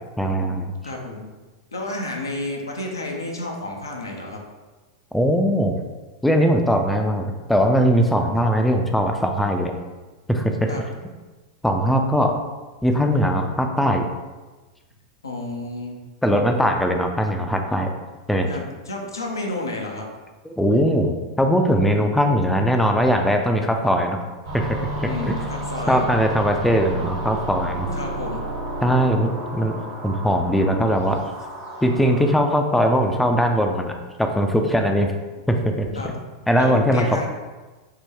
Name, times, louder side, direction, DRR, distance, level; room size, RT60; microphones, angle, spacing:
voice 1, 0.2-0.7 5.1-5.8 6.2-9.7 10.3-10.7 11.6-12.3 12.8-14.1 16.2-17.9 18.3-18.5 20.6-24.2 24.5-25.3 25.9-27.9 28.8-29.7 30.0-31.2 31.8-33.9 34.2-35.1 35.5-35.9 36.5-37.0, equal, 5° left, 3 dB, 0.3 m, -20 dB
voice 2, 0.8-1.3 1.7-4.4 10.7-10.8 15.2-16.0 18.5-20.1 25.0-26.0 27.9-28.5 35.9-36.1 36.6-37.3, left 2 dB, 85° left, 0 dB, 0.5 m, -31 dB
sound 1, 24.4-32.4, right 1 dB, 70° right, 1.1 m, -32 dB
3.6 x 2.2 x 2.9 m, 1.2 s
hypercardioid pair, 95°, 2 cm